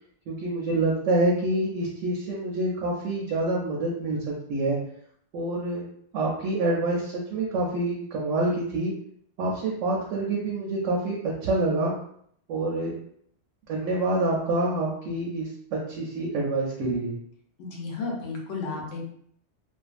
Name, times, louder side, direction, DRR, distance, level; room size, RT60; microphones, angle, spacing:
voice 1, 0.3-4.8 5.3-5.8 6.1-8.9 9.4-11.9 12.5-12.9 13.7-17.2, right 2 dB, 90° right, -2 dB, 0.9 m, -27 dB
voice 2, 17.6-19.0, left 3 dB, 80° left, -1 dB, 1.0 m, -33 dB
2.5 x 2.4 x 2.4 m, 0.67 s
omnidirectional pair, 1.3 m